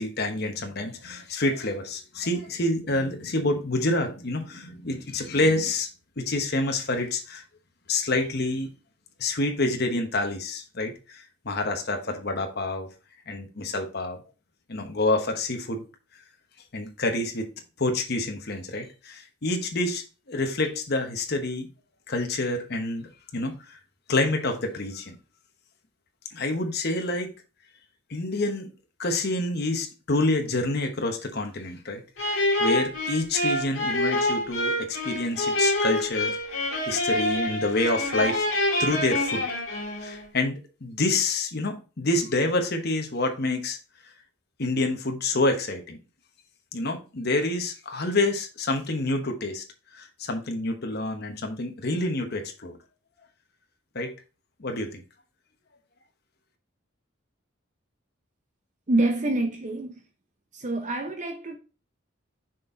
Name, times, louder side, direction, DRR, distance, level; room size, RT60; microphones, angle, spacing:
voice 1, 0.0-5.9 6.2-7.4 7.9-8.7 9.2-12.9 13.3-14.2 14.7-15.8 16.7-17.5 17.8-21.7 22.1-23.8 24.1-25.1 26.3-27.3 28.1-28.7 29.0-36.4 36.9-38.5 38.8-39.4 40.0-43.8 44.6-46.0 46.7-49.6 49.9-52.8 53.9-54.1 54.6-55.0, left 2 dB, 50° left, 1.0 m, -27 dB
sound 1, 32.2-40.2, left 1 dB, 65° left, 2.3 m, -26 dB
voice 2, 58.9-60.0 60.5-61.6, right 2 dB, 35° right, 0.6 m, -26 dB
6.4 x 4.2 x 3.8 m
head